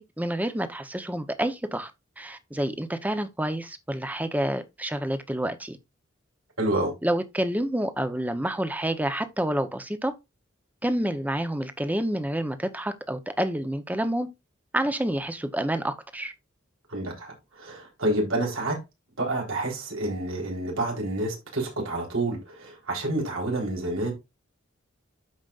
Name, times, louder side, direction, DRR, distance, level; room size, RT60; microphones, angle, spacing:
voice 1, 0.0-1.9 2.2-5.8 7.0-10.1 10.8-14.3 14.7-16.3, right 1 dB, 10° right, 0.8 m, -28 dB
voice 2, 6.6-6.9 16.9-18.8 19.2-24.1, right 1 dB, 85° right, 3.9 m, -28 dB
13.0 x 5.2 x 2.4 m
head